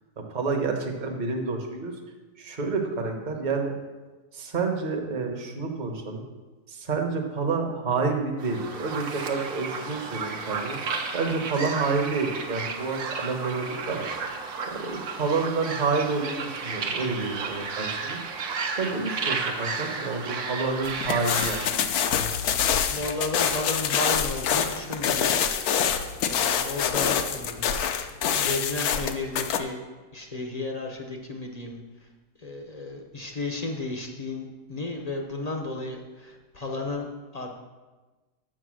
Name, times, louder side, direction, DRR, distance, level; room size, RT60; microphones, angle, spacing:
voice 1, 0.2-1.9 2.4-3.8 4.3-6.2 6.7-10.8 11.1-14.1 14.6-18.2 18.8-21.9, right 4 dB, 35° right, 2 dB, 1.0 m, -29 dB
sound 1, 8.4-21.7, right 4 dB, 60° right, 1.2 m, -33 dB
sound 2, 20.8-29.6, left 8 dB, 70° left, 1.1 m, -26 dB
voice 2, 22.9-25.3 26.2-27.8 28.4-29.8 30.1-31.8 32.4-37.1 37.3-37.5, left 2 dB, 35° left, 1 dB, 0.7 m, -33 dB
7.5 x 6.5 x 6.3 m, 1.2 s
omnidirectional pair, 1.7 m